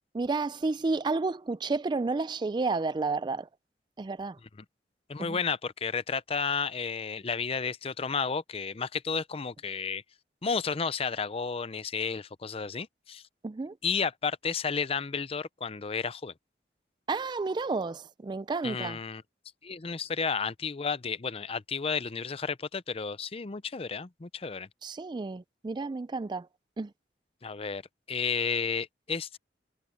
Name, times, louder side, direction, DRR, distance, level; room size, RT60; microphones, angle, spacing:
voice 1, 0.1-3.5 4.0-4.4 5.2-5.4 13.4-13.7 17.1-19.0 24.8-26.5 26.8-26.9, right 3 dB, 25° right, 0.3 m, -31 dB
voice 2, 5.1-10.0 10.4-13.2 13.8-16.3 18.6-19.2 19.6-24.7 27.4-27.8 28.1-29.4, left 5 dB, 35° left, 0.6 m, -32 dB
head